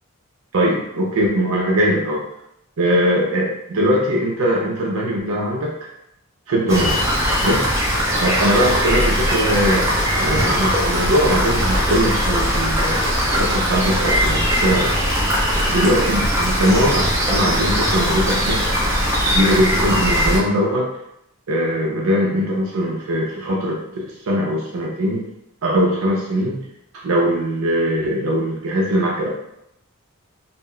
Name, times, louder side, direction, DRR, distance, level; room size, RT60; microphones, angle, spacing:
voice 1, 0.5-2.2 2.8-5.7 6.5-7.0 7.4-7.7 8.2-15.0 15.7-18.7 19.3-20.9 21.5-25.2 25.6-26.6 26.9-29.3, equal, 70° right, -2 dB, 0.5 m, -21 dB
Rain, 6.7-20.4, equal, 15° right, 0.4 m, -20 dB
2.1 x 2.0 x 3.6 m, 0.79 s
head